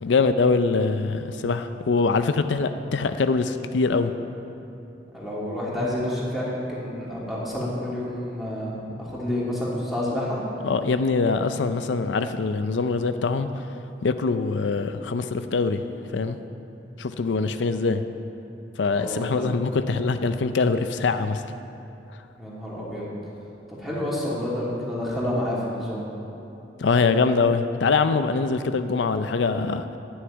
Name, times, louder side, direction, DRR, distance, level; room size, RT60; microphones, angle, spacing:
voice 1, 0.0-4.1 10.6-13.5 14.0-15.8 16.1-16.4 17.0-18.0 18.8-21.4 26.8-29.8, left 4 dB, 90° left, 10 dB, 0.5 m, -23 dB
voice 2, 5.1-10.4 19.0-19.4 22.4-23.1 23.7-26.1, left 1 dB, ahead, -7 dB, 2.9 m, -29 dB
11.5 x 6.4 x 9.0 m, 2.9 s
head